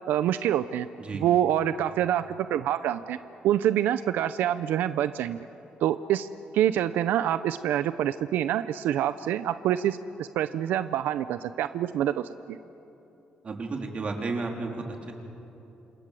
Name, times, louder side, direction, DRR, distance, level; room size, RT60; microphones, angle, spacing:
voice 1, 0.1-0.9 1.1-3.2 3.4-5.4 5.8-6.3 6.5-12.6, right 11 dB, 90° right, 12 dB, 0.6 m, -26 dB
voice 2, 13.4-15.1, right 3 dB, 35° right, 2 dB, 3.8 m, -32 dB
28.0 x 27.0 x 7.7 m, 3.0 s
cardioid pair, 130°, 3 cm